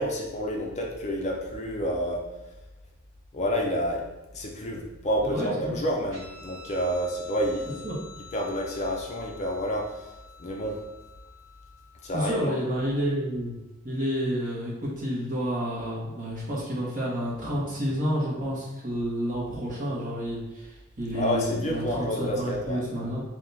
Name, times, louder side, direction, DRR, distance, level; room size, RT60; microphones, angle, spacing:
voice 1, 0.0-2.2 3.3-4.0 4.3-7.8 8.3-9.9 10.4-10.8 12.0-12.6 21.1-23.1, equal, 35° left, -1 dB, 0.6 m, -29 dB
voice 2, 5.2-5.8 7.8-8.0 12.1-13.5 13.8-23.2, equal, 40° right, -5 dB, 1.3 m, -30 dB
Guitar, 6.1-13.0, left 3 dB, 70° right, 1.3 m, -49 dB
3.4 x 2.7 x 4.1 m, 1.0 s
head